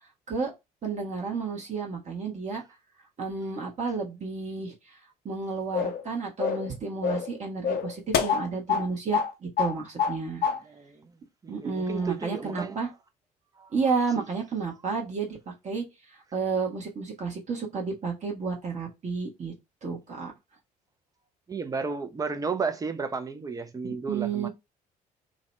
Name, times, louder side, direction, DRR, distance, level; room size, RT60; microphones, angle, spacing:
voice 1, 0.8-2.6 3.2-4.8 5.2-10.4 11.5-12.9 13.7-15.4 15.6-15.8 16.3-19.5 19.8-20.3 23.8-24.5, right 4 dB, 35° right, 1.0 m, -31 dB
sound 1, 5.7-6.0 6.4-6.7 7.0-7.3 7.6-8.9 9.1-9.3 9.6-10.2 10.4-10.6, left 6 dB, 50° left, 0.6 m, -26 dB
voice 2, 10.4-11.2 11.4-12.8 13.6-13.7 14.2-14.3 21.5-24.5, right 5 dB, 20° right, 0.4 m, -33 dB
2.6 x 2.1 x 3.1 m
figure-of-eight pair, 55°, 20 cm